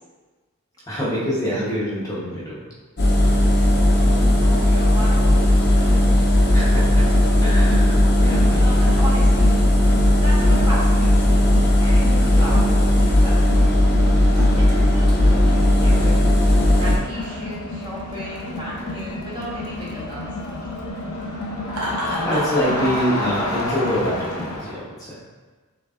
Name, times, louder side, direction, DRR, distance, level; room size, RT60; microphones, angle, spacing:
voice 1, 0.9-2.6 6.5-7.1 7.4-8.8 14.4-14.5 22.2-25.1, equal, 15° left, -8 dB, 0.9 m, -25 dB
Engine, 3.0-17.0, left 1 dB, 50° left, 0.8 m, -16 dB
voice 2, 3.5-5.9 8.6-9.5 10.1-11.4 11.7-12.6 13.0-13.5 14.6-16.3 16.7-20.3, equal, 20° right, -7 dB, 1.0 m, -34 dB
Crowd, 5.4-24.8, left 1 dB, 85° left, 0.7 m, -31 dB
Laughter, 21.7-22.6, equal, 75° right, 1.1 m, -29 dB
6.9 x 3.3 x 2.4 m, 1.4 s
head